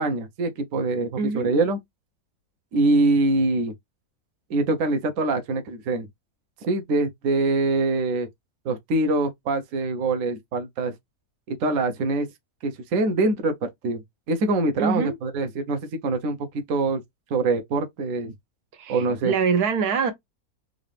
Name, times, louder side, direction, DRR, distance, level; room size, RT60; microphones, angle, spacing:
voice 1, 0.0-1.8 2.7-3.7 4.5-6.1 6.6-8.3 8.6-10.9 11.5-12.3 12.6-14.0 14.3-17.0 17.3-18.3 18.9-19.3, right 2 dB, 65° right, 1.1 m, -24 dB
voice 2, 1.2-1.5 14.8-15.1 18.7-20.1, right 5 dB, 85° right, 1.4 m, -24 dB
3.9 x 2.5 x 3.3 m
omnidirectional pair, 1.6 m